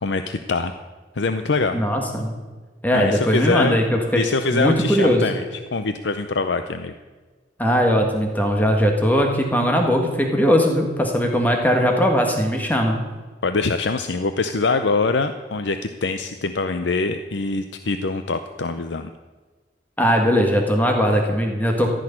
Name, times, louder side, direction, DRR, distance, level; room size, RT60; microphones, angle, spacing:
voice 1, 0.0-0.7 1.2-1.8 2.9-3.8 4.1-5.4 5.7-6.9 13.4-19.1, left 3 dB, 80° left, 9 dB, 0.6 m, -24 dB
voice 2, 1.7-2.3 2.8-5.2 7.6-13.0 20.0-21.9, equal, 10° left, 2 dB, 1.6 m, -19 dB
15.5 x 6.5 x 9.9 m, 1.3 s
head